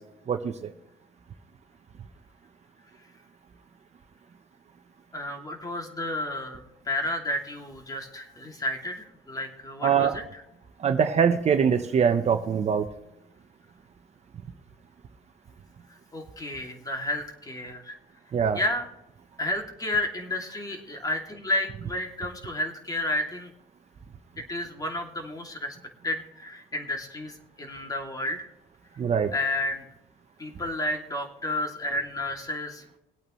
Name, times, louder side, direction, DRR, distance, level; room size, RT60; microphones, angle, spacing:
voice 1, 0.3-0.7 9.8-10.2 10.8-12.9 18.3-18.6 29.0-29.3, right 7 dB, 40° right, 7 dB, 1.0 m, -23 dB
voice 2, 5.1-10.4 15.9-18.0 18.5-18.9 19.4-23.5 24.4-25.8 26.0-28.5 29.3-29.9 30.4-32.8, left 1 dB, 20° left, 3 dB, 2.7 m, -31 dB
22.0 x 8.7 x 3.2 m, 0.88 s
cardioid pair, 110°, 17 cm